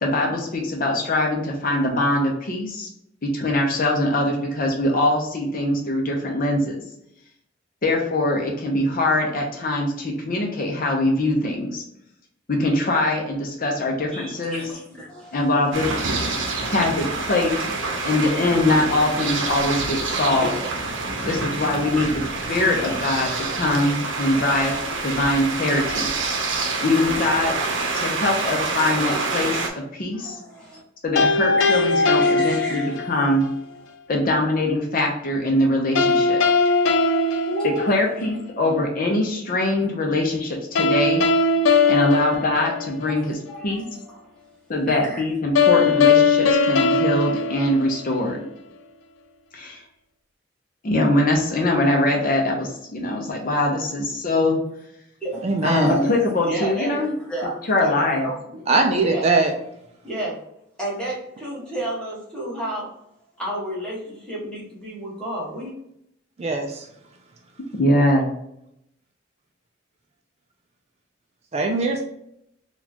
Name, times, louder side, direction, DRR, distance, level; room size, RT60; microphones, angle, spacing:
voice 1, 0.0-2.9 3.2-6.8 7.8-11.8 12.5-14.7 15.3-15.9 16.6-17.5 18.0-20.5 21.3-22.1 22.5-26.1 26.8-27.5 27.9-29.6 29.9-30.4 31.0-33.5 34.1-36.4 37.6-41.2 41.9-43.4 43.6-43.8 44.7-48.4 49.5-49.8 50.8-54.6 55.6-57.1 57.7-58.2 67.8-68.3, left 1 dB, 50° left, 0 dB, 0.7 m, -22 dB
voice 2, 14.1-16.0 20.2-20.7 20.9-21.1 21.8-21.9 25.7-26.4 27.5-27.7 30.1-30.8 31.6-33.0 36.1-36.2 36.6-38.0 43.1-44.5 44.9-45.2 55.2-59.3 60.0-60.4 60.8-62.9 63.4-65.7, right 1 dB, 5° left, -7 dB, 1.4 m, -32 dB
sound 1, 15.7-29.7, right 3 dB, 90° right, 0.7 m, -27 dB
sound 2, 31.2-33.3 36.0-38.4 40.8-43.3 45.6-48.4, left 4 dB, 85° left, 0.4 m, -20 dB
voice 3, 55.4-56.0 58.7-59.5 66.4-66.9 71.5-72.0, right 3 dB, 35° right, 3 dB, 0.4 m, -21 dB
4.1 x 2.3 x 2.8 m, 0.76 s
head